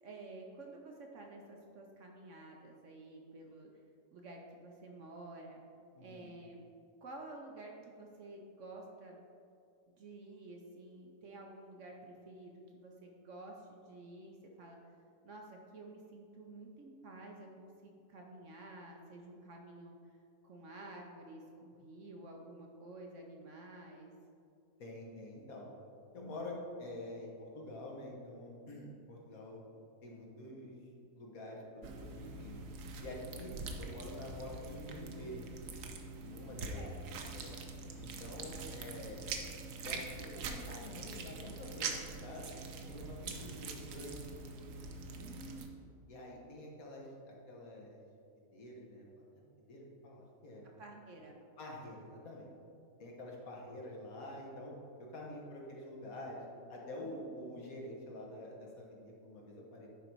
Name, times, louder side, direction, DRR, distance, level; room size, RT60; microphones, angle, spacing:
voice 1, 0.0-3.7 4.1-5.6 6.0-6.6 7.0-9.2 10.0-14.8 15.2-19.9 20.4-24.1 36.7-36.9 45.2-45.8 50.8-51.4 57.0-57.2, right 2 dB, 60° right, 1 dB, 1.0 m, -51 dB
voice 2, 5.9-6.3 24.8-25.7 26.1-29.6 30.0-30.8 31.2-32.6 33.0-35.4 36.2-36.9 37.3-37.5 38.0-39.2 39.8-42.5 42.9-44.3 46.1-48.1 48.5-49.0 49.7-50.8 51.6-52.5 53.0-54.7 55.0-56.4 56.7-59.9, left 1 dB, 60° left, -2 dB, 1.6 m, -47 dB
sound 1, 31.8-45.7, right 3 dB, 85° right, 1.3 m, -44 dB
10.0 x 3.9 x 4.5 m, 2.5 s
omnidirectional pair, 1.7 m